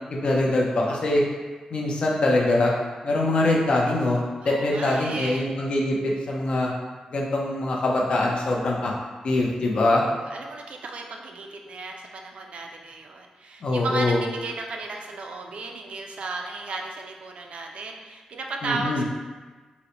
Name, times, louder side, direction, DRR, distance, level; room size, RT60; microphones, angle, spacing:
voice 1, 0.1-1.2 1.7-2.7 3.0-6.7 7.1-8.9 9.2-10.0 13.6-14.2 18.6-19.0, left 2 dB, 50° left, -2 dB, 0.5 m, -23 dB
voice 2, 4.4-5.4 9.8-19.0, right 3 dB, 65° right, 2 dB, 0.3 m, -34 dB
3.8 x 2.0 x 2.9 m, 1.4 s
wide cardioid pair, 180°, 2 cm